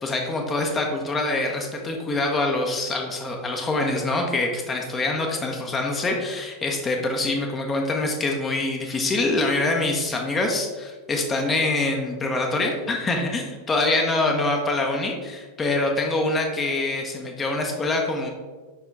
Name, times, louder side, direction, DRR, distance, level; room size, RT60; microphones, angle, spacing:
voice 1, 0.0-18.3, left 2 dB, 20° left, 2 dB, 0.9 m, -25 dB
5.5 x 4.7 x 4.6 m, 1.3 s
figure-of-eight pair, 90°, 0 cm